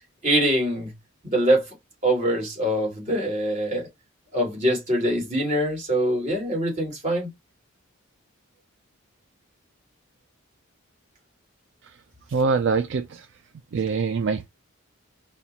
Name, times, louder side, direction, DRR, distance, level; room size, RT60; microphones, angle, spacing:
voice 1, 0.2-0.9 1.2-1.6 2.0-3.9 4.3-7.3, right 1 dB, 35° right, 2.4 m, -23 dB
voice 2, 12.3-13.3 13.7-14.5, right 5 dB, 60° right, 0.4 m, -24 dB
4.3 x 2.3 x 4.0 m
head